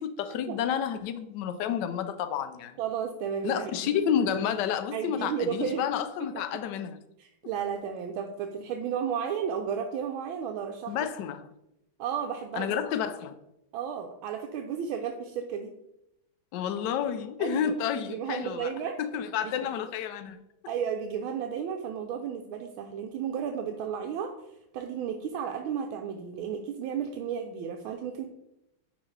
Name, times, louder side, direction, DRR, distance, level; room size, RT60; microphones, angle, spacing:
voice 1, 0.0-2.8 3.4-7.0 10.9-11.4 12.5-13.4 16.5-18.7 19.0-20.4, left 8 dB, 75° left, 1.1 m, -30 dB
voice 2, 2.8-4.0 4.9-5.9 7.2-11.0 12.0-12.8 13.7-15.8 17.4-17.7 18.1-19.0 19.4-19.5 20.7-24.3 24.7-28.3, right 8 dB, 85° right, 1.4 m, -33 dB
10.0 x 3.7 x 3.2 m
omnidirectional pair, 2.2 m